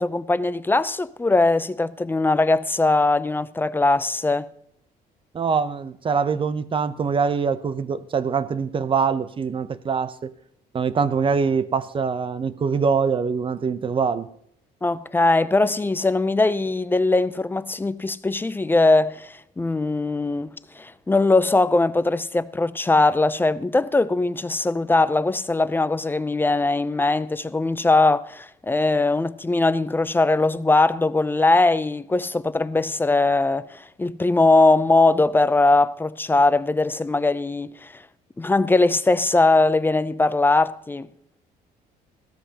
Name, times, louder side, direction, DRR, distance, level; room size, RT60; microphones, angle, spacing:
voice 1, 0.0-4.5 14.8-37.9 38.4-41.1, left 2 dB, 10° left, 0.5 m, -20 dB
voice 2, 5.3-10.3 10.7-14.3, right 5 dB, 30° right, 0.7 m, -23 dB
16.0 x 13.0 x 2.9 m
cardioid pair, 110°, 17 cm